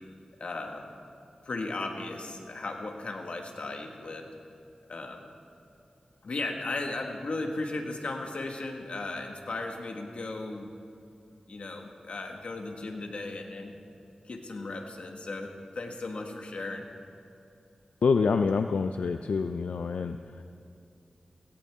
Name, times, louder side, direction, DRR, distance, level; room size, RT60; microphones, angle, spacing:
voice 1, 0.4-0.9 1.4-4.3 4.9-5.2 6.2-10.7 11.5-13.8 14.2-16.9, left 2 dB, 65° left, 2 dB, 1.7 m, -36 dB
voice 2, 18.0-20.4, left 5 dB, 90° left, 7 dB, 0.4 m, -27 dB
17.0 x 17.0 x 3.6 m, 2.7 s
wide cardioid pair, 80°, 2 cm